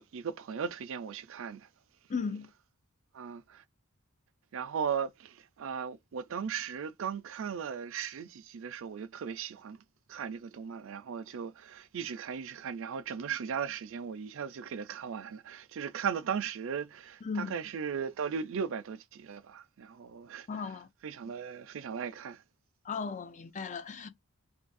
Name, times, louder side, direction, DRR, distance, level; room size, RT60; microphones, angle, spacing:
voice 1, 0.0-1.7 3.1-3.6 4.5-9.8 10.1-20.5 21.0-22.4, right 7 dB, 65° right, 0.4 m, -37 dB
voice 2, 2.1-2.5 17.2-17.5 20.5-20.9 22.8-24.1, left 5 dB, 35° left, 0.5 m, -36 dB
2.6 x 2.6 x 3.9 m
head